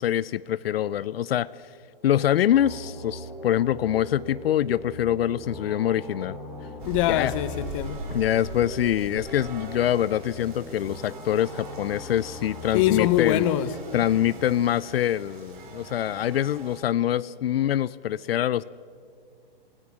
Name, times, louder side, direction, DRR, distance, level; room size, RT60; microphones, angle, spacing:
voice 1, 0.0-1.5 2.0-6.4 7.1-7.3 8.1-13.5 13.9-18.6, left 11 dB, 80° left, 0.5 m, -25 dB
sound 1, 2.5-13.5, left 1 dB, 5° right, 5.5 m, -40 dB
voice 2, 6.8-8.0 12.7-13.7, left 12 dB, 35° left, 0.9 m, -23 dB
sound 2, 6.8-16.8, right 4 dB, 55° right, 5.0 m, -42 dB
26.5 x 18.0 x 6.1 m
hypercardioid pair, 150°, 30 cm